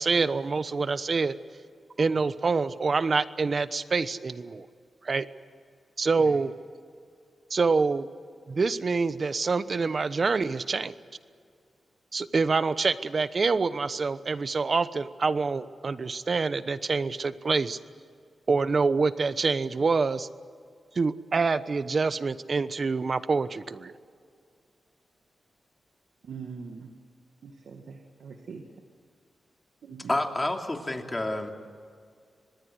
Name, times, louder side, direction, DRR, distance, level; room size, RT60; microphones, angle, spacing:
voice 1, 0.0-1.4 2.0-4.7 5.0-5.3 6.0-6.5 7.5-8.1 8.5-10.9 12.1-17.8 18.5-20.3 20.9-23.9, right 4 dB, 50° right, 14 dB, 1.0 m, -26 dB
voice 2, 26.2-26.9 27.4-28.7 29.8-30.1, right 5 dB, 80° right, 4 dB, 1.9 m, -42 dB
voice 3, 30.1-31.5, left 1 dB, 20° left, 3 dB, 3.1 m, -29 dB
25.5 x 20.0 x 8.0 m, 2.2 s
cardioid pair, 70°, 0 cm